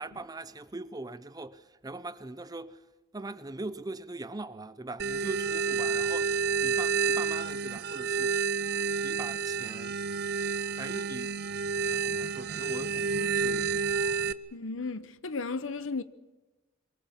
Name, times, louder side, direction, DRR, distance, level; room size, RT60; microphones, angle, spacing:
voice 1, 0.0-2.8 3.1-8.4 9.0-10.0 10.8-11.4 11.7-13.9, right 2 dB, 20° right, 0.7 m, -41 dB
sound 1, 5.0-14.3, right 5 dB, 55° right, 0.7 m, -29 dB
voice 2, 14.5-16.0, left 4 dB, 90° left, 0.9 m, -34 dB
23.5 x 20.0 x 7.3 m
head